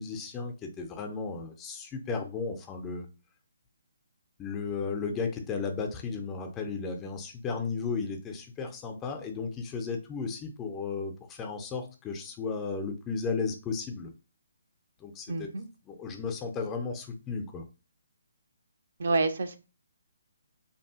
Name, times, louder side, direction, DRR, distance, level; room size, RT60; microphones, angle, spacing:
voice 1, 0.0-3.1 4.4-14.1 15.0-15.5 15.9-17.6, left 4 dB, 15° left, 4 dB, 0.4 m, -34 dB
voice 2, 15.3-15.7 19.0-19.6, right 3 dB, 55° right, 8 dB, 0.3 m, -28 dB
2.6 x 2.4 x 2.3 m, 0.30 s
figure-of-eight pair, 140°, 0 cm